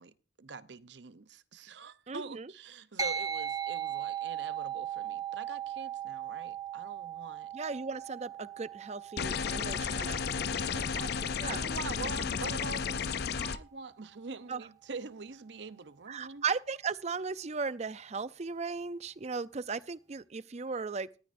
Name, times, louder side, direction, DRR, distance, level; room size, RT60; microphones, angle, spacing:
voice 1, 0.0-7.5 10.7-16.4, right 4 dB, 70° right, 0.8 m, -44 dB
voice 2, 2.1-2.5 7.5-10.4 11.4-11.7 14.5-14.6 16.1-21.1, right 5 dB, 35° right, 0.5 m, -36 dB
sound 1, 3.0-12.7, right 9 dB, 20° right, 1.0 m, -39 dB
sound 2, 9.2-13.6, left 6 dB, 60° left, 0.5 m, -33 dB
18.5 x 13.0 x 2.6 m
head